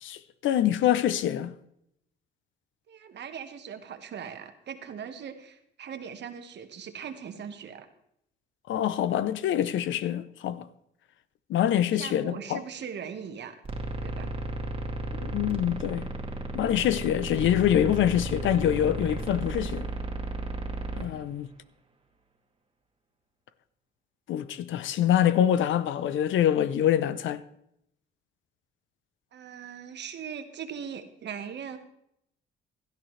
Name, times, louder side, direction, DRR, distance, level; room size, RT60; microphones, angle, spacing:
voice 1, 0.0-1.5 8.7-10.7 11.5-12.6 15.1-16.1 16.5-19.9 20.9-21.5 24.3-27.4, left 11 dB, 75° left, 0.7 m, -25 dB
voice 2, 2.9-7.9 11.9-13.6 14.0-14.3 21.1-21.3 29.3-31.8, right 7 dB, 60° right, 1.4 m, -40 dB
sound 1, 13.6-21.1, right 2 dB, 25° right, 2.0 m, -34 dB
17.0 x 13.0 x 3.3 m
cardioid pair, 90°, 20 cm